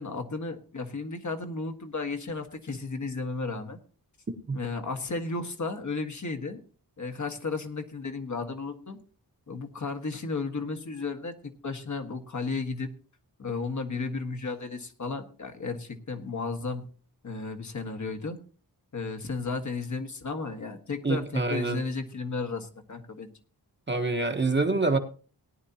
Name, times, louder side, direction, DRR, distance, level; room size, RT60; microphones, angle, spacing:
voice 1, 0.0-3.8 4.5-6.6 7.0-9.0 9.5-12.9 13.4-16.8 17.2-18.4 18.9-23.3, left 4 dB, 45° left, 5 dB, 1.5 m, -34 dB
voice 2, 21.0-21.8 23.9-25.0, right 3 dB, 25° right, 5 dB, 1.2 m, -26 dB
18.5 x 10.5 x 2.9 m, 0.38 s
wide cardioid pair, 160°, 39 cm